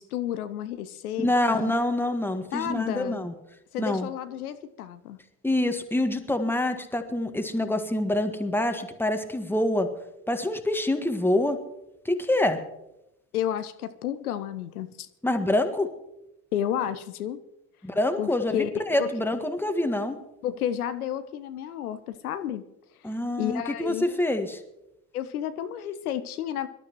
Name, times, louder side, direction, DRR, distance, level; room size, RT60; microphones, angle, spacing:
voice 1, 0.0-1.7 2.5-3.2 3.7-5.2 13.3-15.1 16.5-17.4 18.2-19.1 20.4-22.6 23.4-24.2 25.1-26.7, left 10 dB, 75° left, 11 dB, 0.7 m, -31 dB
voice 2, 1.2-3.3 3.8-4.1 5.4-9.9 10.3-11.6 12.0-12.6 15.2-15.9 17.8-20.2 23.0-24.6, left 1 dB, 5° left, 7 dB, 1.6 m, -26 dB
24.5 x 12.0 x 3.1 m, 0.87 s
figure-of-eight pair, 60°, 44 cm